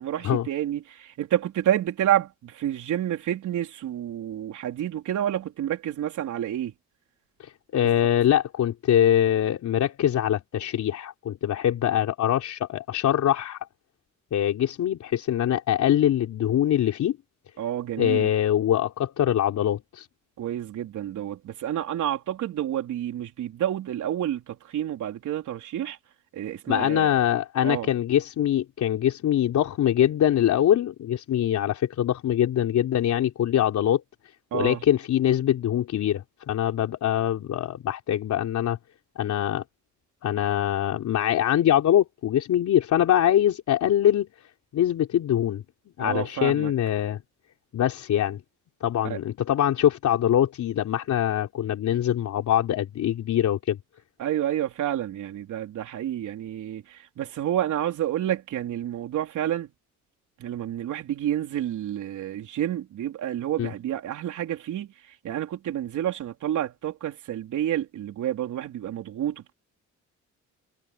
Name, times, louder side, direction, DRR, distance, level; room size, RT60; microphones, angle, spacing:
voice 1, 0.0-6.7 17.6-18.3 20.4-26.0 26.3-27.2 27.6-27.9 34.5-34.8 46.0-46.7 49.0-49.2 54.2-59.7 60.4-64.9 65.2-69.5, right 11 dB, 75° right, 4.1 m, -29 dB
voice 2, 7.4-13.6 14.3-17.2 18.0-20.1 26.7-34.0 34.5-38.8 39.2-39.6 40.2-44.3 44.7-45.6 46.0-47.2 47.7-48.4 48.8-53.8 63.6-63.7, left 11 dB, 70° left, 4.0 m, -23 dB
cardioid pair, 90°, 30 cm